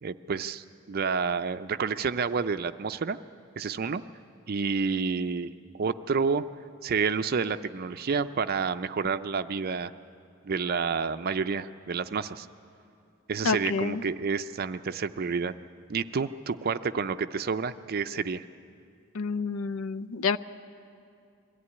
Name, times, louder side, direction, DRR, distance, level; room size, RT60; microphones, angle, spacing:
voice 1, 0.0-3.2 3.6-4.0 4.5-6.4 6.8-9.9 10.4-12.5 13.3-15.5 15.9-18.4, right 5 dB, 45° right, 11 dB, 0.4 m, -29 dB
voice 2, 13.4-14.0 19.1-20.4, left 5 dB, 75° left, 14 dB, 0.5 m, -28 dB
22.5 x 14.5 x 9.7 m, 2.4 s
head